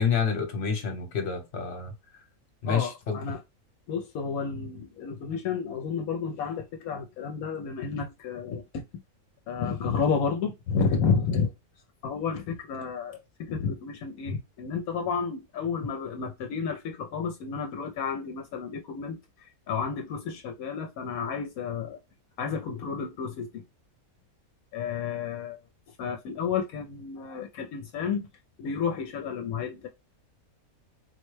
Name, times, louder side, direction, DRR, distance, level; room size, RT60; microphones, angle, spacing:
voice 1, 0.0-1.9 2.6-3.2, left 6 dB, 50° left, 1.1 m, -28 dB
voice 2, 2.7-3.4 3.9-8.8 9.5-11.5 12.0-22.0 22.4-23.6 24.7-25.6 25.9-28.3 28.6-29.9, left 6 dB, 75° left, 1.0 m, -31 dB
4.1 x 2.1 x 3.1 m
omnidirectional pair, 1.6 m